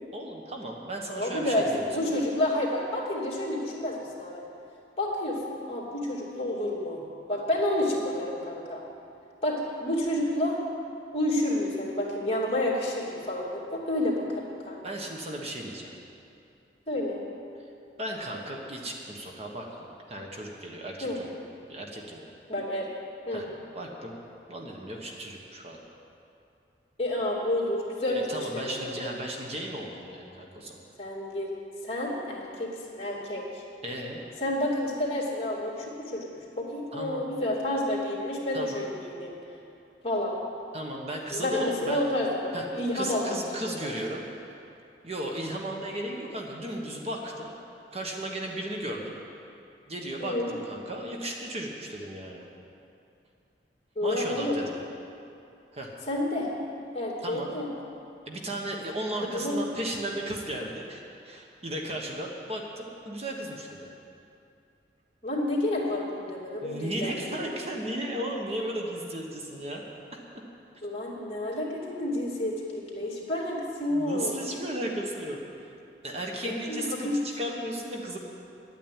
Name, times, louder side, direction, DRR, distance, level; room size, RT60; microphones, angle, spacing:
voice 1, 0.1-1.9 14.8-15.9 18.0-21.3 21.7-22.3 23.3-23.5 23.7-24.1 24.5-25.8 28.3-30.8 33.8-34.2 36.9-37.3 38.5-38.9 40.7-42.1 42.5-42.6 42.9-44.5 45.0-47.5 47.9-49.1 49.9-52.5 54.0-54.8 55.7-55.9 57.2-57.5 58.3-63.9 66.6-69.8 73.9-75.7 76.0-78.2, right 1 dB, 35° right, 0 dB, 1.3 m, -35 dB
voice 2, 1.1-4.4 5.0-7.0 7.3-8.8 9.4-10.6 11.1-14.8 16.9-17.2 21.0-21.2 22.5-22.9 23.3-23.5 27.0-29.2 31.0-31.5 31.8-33.6 34.4-36.3 36.6-39.3 40.0-40.3 41.3-43.9 50.2-50.5 54.0-54.6 56.1-56.5 56.9-57.7 59.3-59.6 65.2-67.6 70.8-74.3 76.4-77.2, left 1 dB, 35° left, -5 dB, 2.7 m, -30 dB
11.5 x 9.1 x 9.0 m, 2.6 s
head